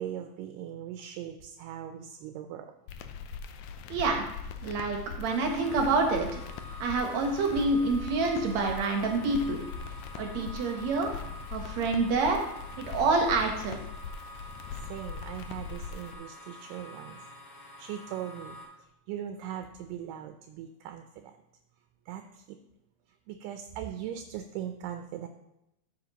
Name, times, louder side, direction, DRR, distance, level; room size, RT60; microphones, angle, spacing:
voice 1, 0.0-2.7 14.9-17.2 17.6-18.6 19.1-21.3 22.1-22.4 23.3-25.3, right 10 dB, 80° right, 6 dB, 2.1 m, -39 dB
sound 1, 2.9-16.1, left 6 dB, 85° left, 1.7 m, -41 dB
voice 2, 3.9-4.2 4.6-6.4 6.8-9.6 10.2-11.1 11.5-12.4 12.8-13.8, right 3 dB, 65° right, 2 dB, 2.0 m, -27 dB
sound 2, 5.3-18.6, equal, 40° left, 3.1 m, -47 dB
12.5 x 8.0 x 2.9 m, 0.85 s
omnidirectional pair, 4.0 m